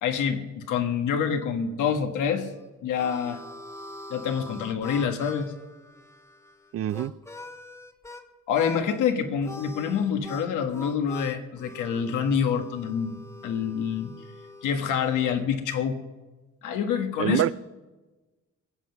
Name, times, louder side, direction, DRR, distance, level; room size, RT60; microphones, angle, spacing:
voice 1, 0.0-2.5 2.8-3.4 4.1-5.5 8.5-14.1 14.6-16.0 16.6-17.4, left 7 dB, 85° left, 5 dB, 1.6 m, -27 dB
Harmonica, 2.4-8.2 8.5-9.0 9.4-15.4, left 2 dB, 10° left, 1.2 m, -44 dB
voice 2, 6.7-7.1 17.2-17.5, right 12 dB, 50° right, 19 dB, 0.4 m, -25 dB
21.5 x 7.7 x 5.9 m, 1.2 s
cardioid pair, 90°, 30 cm